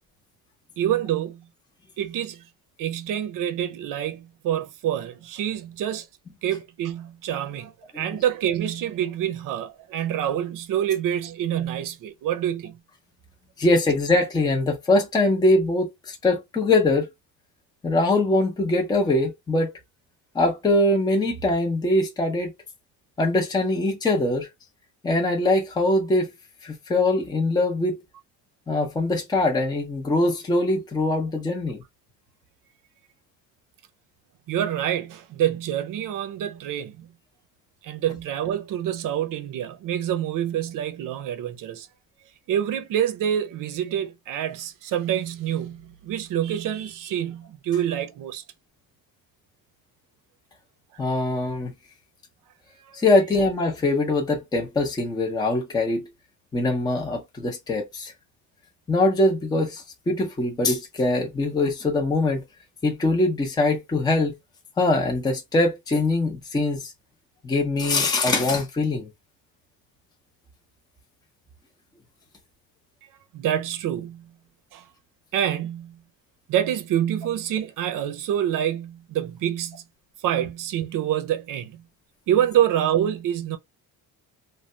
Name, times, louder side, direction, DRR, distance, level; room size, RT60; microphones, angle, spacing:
voice 1, 0.8-1.4 2.0-2.4 2.8-6.1 6.4-12.8 34.5-37.1 37.8-41.9 42.5-48.4 52.9-53.0 73.3-74.3 74.7-74.8 75.3-76.0 76.5-79.8 80.2-81.8 82.3-83.6, right 10 dB, 60° right, 0.7 m, -26 dB
voice 2, 13.6-17.1 17.8-19.7 20.3-22.5 23.2-24.5 25.0-26.3 26.6-28.0 28.7-31.8 51.0-51.7 52.9-56.1 56.5-58.1 58.9-62.4 62.8-64.3 64.8-66.9 67.4-69.1, left 2 dB, 10° left, 0.6 m, -22 dB
3.2 x 2.2 x 2.6 m
cardioid pair, 170°, 37 cm